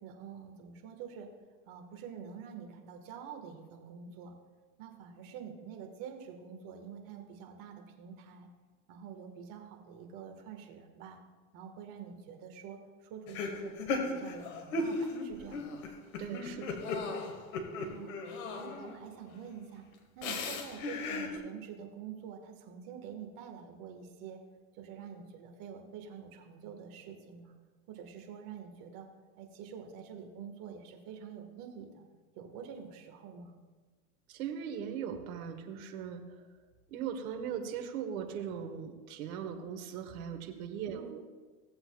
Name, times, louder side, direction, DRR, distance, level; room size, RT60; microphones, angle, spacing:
voice 1, 0.0-1.3 1.7-4.4 4.8-8.5 8.9-11.2 11.5-15.9 17.8-18.2 18.5-19.9 20.1-24.4 24.8-27.6 27.9-29.1 29.4-32.0 32.3-33.6 40.9-41.1, right 7 dB, 45° right, 3 dB, 1.7 m, -47 dB
sound 1, 13.3-19.1 20.2-21.4, left 3 dB, 70° left, 1.8 m, -37 dB
voice 2, 16.2-16.8 34.3-36.2 36.9-41.2, right 8 dB, 65° right, 4 dB, 1.5 m, -39 dB
17.0 x 7.7 x 2.4 m, 1.4 s
supercardioid pair, 125°, 44 cm